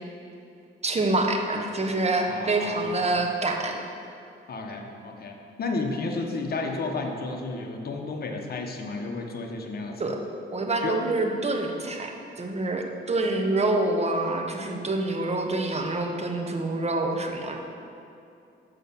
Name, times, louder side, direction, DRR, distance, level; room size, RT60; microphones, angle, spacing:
voice 1, 0.8-3.8 10.0-10.2 10.5-12.1 12.4-17.6, right 2 dB, 30° right, 3 dB, 1.0 m, -26 dB
voice 2, 2.3-3.2 4.5-10.0 10.8-11.0, left 3 dB, 50° left, 2 dB, 1.1 m, -32 dB
6.6 x 5.3 x 7.1 m, 2.6 s
cardioid pair, 75°, 21 cm